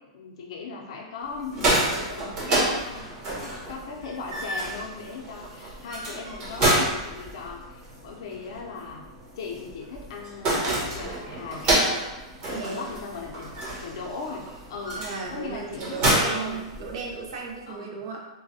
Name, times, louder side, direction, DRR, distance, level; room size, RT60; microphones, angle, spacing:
voice 1, 0.0-3.1 3.4-9.0 9.4-11.7 12.5-13.5 13.8-15.0 15.3-16.6 17.7-18.0, left 4 dB, 65° left, -1 dB, 0.5 m, -38 dB
sound 1, 1.3-17.3, right 1 dB, 35° right, 1.2 m, -29 dB
voice 2, 12.5-12.9 15.0-18.3, right 5 dB, 60° right, 0 dB, 0.7 m, -35 dB
3.4 x 2.2 x 2.7 m, 1.1 s
hypercardioid pair, 140°, 3 cm